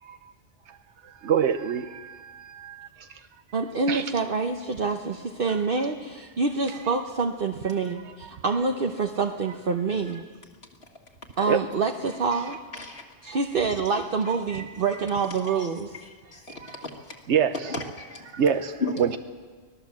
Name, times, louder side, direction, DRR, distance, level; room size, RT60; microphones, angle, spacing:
voice 1, 1.2-2.9 3.9-4.0 11.5-11.6 13.3-13.4 15.5-15.6 17.3-17.5 18.3-18.7 19.0-19.2, right 8 dB, 90° right, 9 dB, 1.1 m, -25 dB
voice 2, 3.5-10.2 11.4-12.6 13.2-15.9, right 4 dB, 55° right, 4 dB, 1.2 m, -26 dB
voice 3, 12.7-13.0 15.4-15.7 16.0-17.2 17.7-18.3 18.8-18.9, left 3 dB, 65° left, -1 dB, 2.3 m, -35 dB
24.5 x 17.5 x 7.5 m, 1.5 s
omnidirectional pair, 1.1 m